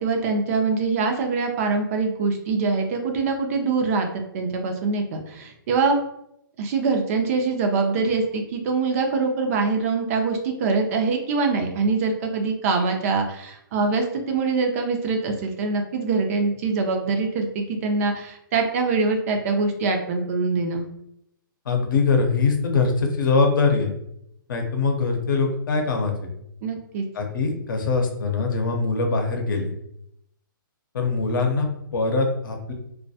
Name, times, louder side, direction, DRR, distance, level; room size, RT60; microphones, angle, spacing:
voice 1, 0.0-6.0 6.6-20.9 26.6-27.0, right 4 dB, 40° right, 4 dB, 0.5 m, -24 dB
voice 2, 21.6-23.9 24.5-26.3 27.1-29.7 30.9-32.7, left 4 dB, 65° left, 3 dB, 0.7 m, -22 dB
2.2 x 2.1 x 2.7 m, 0.76 s
hypercardioid pair, 135°, 12 cm